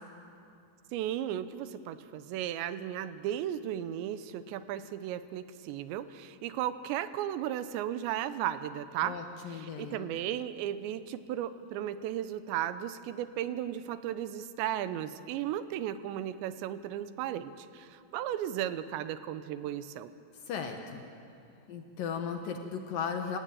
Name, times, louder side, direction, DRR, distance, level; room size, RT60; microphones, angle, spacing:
voice 1, 0.9-9.2 9.5-20.1, right 11 dB, 80° right, 12 dB, 2.9 m, -35 dB
voice 2, 9.0-10.1 20.5-21.0 21.7-23.4, left 6 dB, 65° left, 4 dB, 2.4 m, -36 dB
28.0 x 16.0 x 9.0 m, 2.5 s
omnidirectional pair, 5.4 m